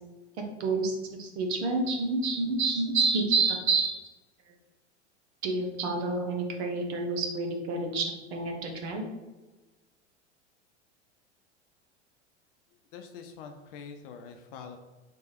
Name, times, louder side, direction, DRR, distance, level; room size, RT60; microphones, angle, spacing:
voice 1, 0.6-4.0 5.4-9.0, right 3 dB, 65° right, 2 dB, 1.0 m, -28 dB
voice 2, 12.9-14.8, left 6 dB, 50° left, 5 dB, 0.6 m, -44 dB
3.5 x 3.5 x 4.3 m, 1.2 s
figure-of-eight pair, 80°, 35 cm